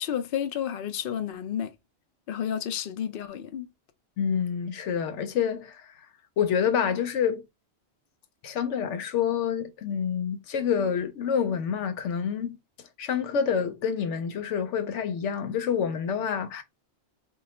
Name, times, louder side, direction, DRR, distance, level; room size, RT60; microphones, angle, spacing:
voice 1, 0.0-1.7 2.3-3.7, left 9 dB, 60° left, 0.7 m, -31 dB
voice 2, 4.2-5.8 6.4-7.4 8.4-12.6 13.0-16.6, left 7 dB, 85° left, 1.0 m, -27 dB
2.9 x 2.4 x 4.2 m
omnidirectional pair, 1.2 m